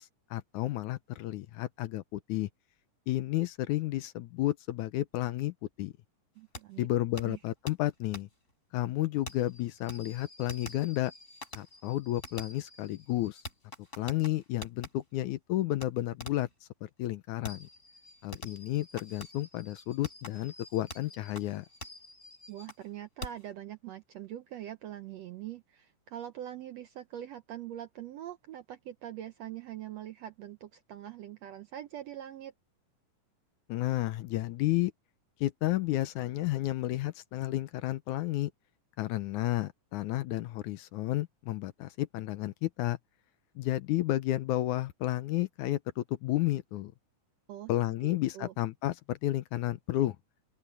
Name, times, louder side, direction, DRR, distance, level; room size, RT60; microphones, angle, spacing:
voice 1, 0.0-2.5 3.1-5.9 6.8-8.3 8.7-11.1 11.6-13.4 14.0-16.5 16.8-17.7 18.2-21.7 33.7-34.9 35.4-38.5 39.0-43.0 43.6-46.9 47.7-50.2, left 15 dB, 75° left, 2.0 m, -32 dB
voice 2, 6.4-6.9 7.2-7.4 22.5-32.5 47.5-47.7 48.0-48.5, right 11 dB, 75° right, 1.6 m, -43 dB
Fireworks, 6.5-6.6 7.2-7.3 7.7-7.8 8.1-8.2 9.3-14.9 15.8-15.9 16.2-16.5 17.5-22.9 23.2-23.5, left 2 dB, 20° left, 5.0 m, -46 dB
open air
omnidirectional pair, 3.8 m